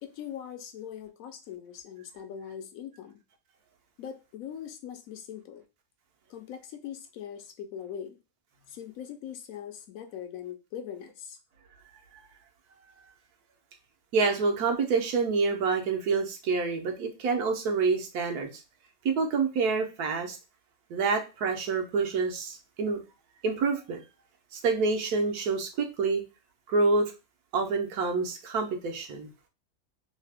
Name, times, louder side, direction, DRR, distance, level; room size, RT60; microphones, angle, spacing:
voice 1, 0.0-3.2 4.0-5.6 6.3-8.2 8.7-11.4, left 9 dB, 70° left, 1.0 m, -41 dB
voice 2, 14.1-18.5 19.0-20.4 20.9-23.0 23.4-24.0 24.5-26.2 26.7-27.1 27.5-29.3, right 4 dB, 80° right, 1.3 m, -27 dB
3.3 x 2.8 x 3.4 m
omnidirectional pair, 1.6 m